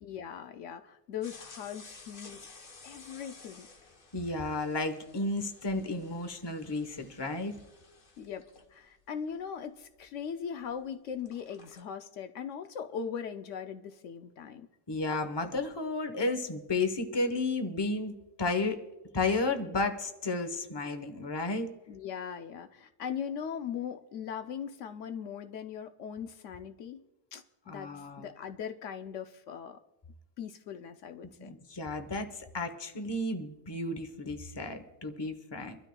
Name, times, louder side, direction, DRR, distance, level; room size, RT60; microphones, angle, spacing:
voice 1, 0.0-2.5 2.8-3.7 8.2-14.7 21.9-27.0 27.3-29.8 30.4-31.5, left 7 dB, 75° left, 8 dB, 0.9 m, -40 dB
sound 1, 1.2-10.8 11.1-11.8, left 4 dB, 45° left, 1.1 m, -54 dB
voice 2, 4.1-7.6 14.9-18.8 19.1-21.7 27.7-28.3 31.4-35.8, left 2 dB, 20° left, 8 dB, 0.9 m, -33 dB
25.5 x 12.5 x 2.3 m, 1.0 s
omnidirectional pair, 1.3 m